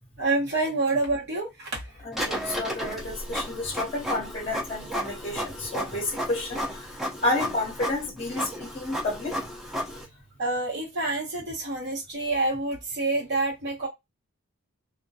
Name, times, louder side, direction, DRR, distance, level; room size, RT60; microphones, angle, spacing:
voice 1, 0.2-2.0 10.4-13.9, right 2 dB, 55° right, 1.0 m, -27 dB
voice 2, 2.0-6.9 7.2-9.4, left 2 dB, 25° left, 0.9 m, -30 dB
Printer, 2.1-10.0, equal, ahead, 0.7 m, -33 dB
2.2 x 2.1 x 2.7 m
head